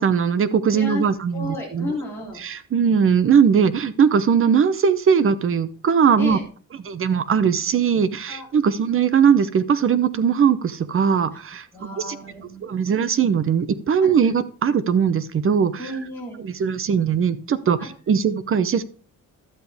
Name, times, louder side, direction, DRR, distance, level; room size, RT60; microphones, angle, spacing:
voice 1, 0.0-1.9 2.4-6.4 6.9-11.7 12.0-12.2 12.6-15.7 16.4-18.8, right 7 dB, 40° right, 12 dB, 0.7 m, -20 dB
voice 2, 0.7-1.0 1.3-2.4 6.2-6.4 8.3-8.5 11.7-12.6 14.0-14.1 15.8-16.4 17.8-17.9, left 1 dB, 5° left, -5 dB, 3.2 m, -32 dB
12.0 x 7.9 x 3.4 m, 0.41 s
wide cardioid pair, 175°, 33 cm